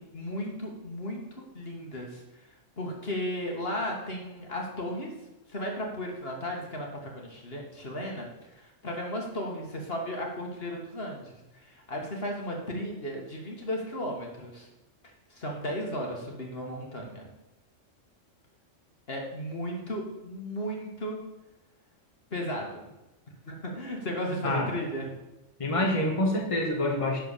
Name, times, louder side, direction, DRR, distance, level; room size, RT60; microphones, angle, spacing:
voice 1, 0.0-5.1 5.5-6.9 7.1-14.7 15.3-17.3 19.1-21.2 22.3-22.9 23.5-25.1, equal, 50° left, 0 dB, 1.9 m, -35 dB
voice 2, 25.6-27.2, left 1 dB, 25° left, -1 dB, 1.5 m, -26 dB
11.0 x 4.5 x 6.8 m, 0.99 s
omnidirectional pair, 1.3 m